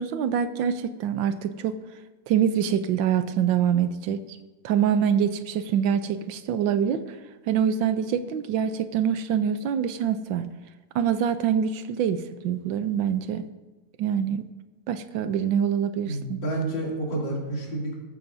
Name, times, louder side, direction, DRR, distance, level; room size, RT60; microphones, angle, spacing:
voice 1, 0.0-1.7 2.3-4.2 4.6-7.0 7.5-10.5 10.9-13.5 14.0-14.4 14.9-16.4, right 8 dB, 80° right, 11 dB, 1.4 m, -25 dB
voice 2, 16.1-17.9, right 2 dB, 70° left, -4 dB, 3.5 m, -29 dB
14.0 x 14.0 x 2.7 m, 1.2 s
omnidirectional pair, 2.1 m